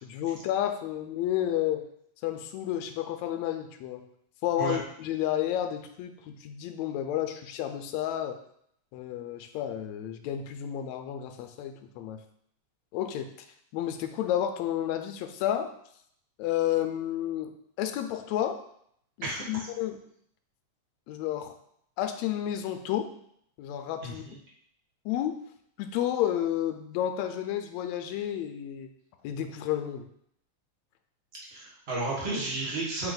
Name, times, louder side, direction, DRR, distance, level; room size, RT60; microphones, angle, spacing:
voice 1, 0.0-1.8 2.2-4.1 4.4-8.4 8.9-12.2 12.9-13.3 13.7-15.7 16.4-17.5 17.8-18.6 19.2-20.0 21.1-21.6 22.0-23.1 23.6-24.2 25.1-25.4 25.8-28.9 29.2-30.1, left 11 dB, 80° left, 7 dB, 1.8 m, -31 dB
voice 2, 19.2-19.7 24.0-24.3 31.5-33.1, right 2 dB, 35° right, -4 dB, 1.1 m, -32 dB
7.0 x 3.5 x 3.9 m, 0.70 s
omnidirectional pair, 3.3 m